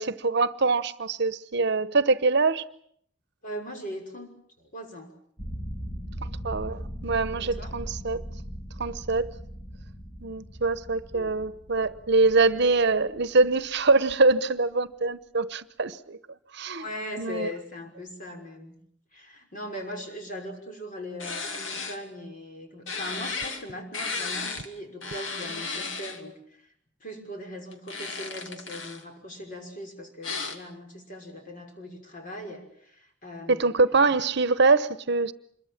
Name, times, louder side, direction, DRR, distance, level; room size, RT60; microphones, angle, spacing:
voice 1, 0.0-2.7 6.4-8.2 8.8-9.3 10.2-16.2 16.5-16.8 17.2-17.5 33.5-35.3, right 3 dB, 60° right, 1.0 m, -24 dB
voice 2, 3.4-5.1 7.4-7.7 11.1-11.4 16.8-18.8 19.1-26.6 27.0-33.7, left 1 dB, 45° left, 5.9 m, -40 dB
sound 1, 5.4-13.8, equal, 20° left, 4.1 m, -39 dB
sound 2, 21.2-22.0 22.9-23.6 23.9-24.7 25.0-26.2 27.7-29.0 30.2-30.6, left 4 dB, 75° left, 2.7 m, -34 dB
26.5 x 22.5 x 7.4 m
head